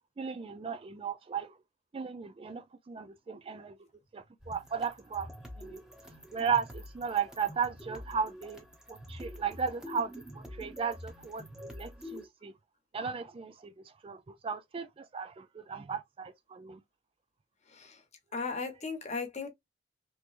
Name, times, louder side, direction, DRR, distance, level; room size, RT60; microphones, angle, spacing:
voice 1, 0.2-1.5 1.9-3.7 4.1-5.3 5.6-5.8 6.3-12.5 12.9-13.7 14.0-16.8, right 6 dB, 30° right, 0.3 m, -36 dB
sound 1, 4.4-12.2, left 1 dB, 5° right, 0.9 m, -47 dB
voice 2, 18.3-19.5, left 4 dB, 35° left, 0.9 m, -36 dB
3.3 x 3.1 x 2.5 m
head